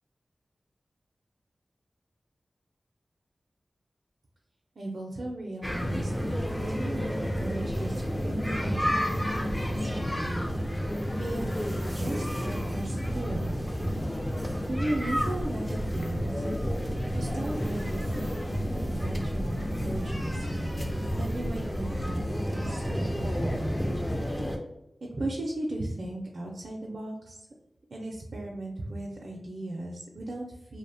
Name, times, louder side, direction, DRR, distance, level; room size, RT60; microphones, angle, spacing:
voice 1, 4.8-10.9 11.2-13.6 14.7-16.4 17.1-20.5 21.2-23.8 25.1-27.3 27.9-30.8, right 1 dB, 70° right, -2 dB, 0.4 m, -37 dB
sound 1, 5.6-24.6, equal, 10° left, 0.4 m, -30 dB
sound 2, 7.7-21.9, equal, 55° left, 0.8 m, -49 dB
2.7 x 2.0 x 2.6 m, 0.86 s
wide cardioid pair, 70°, 0 cm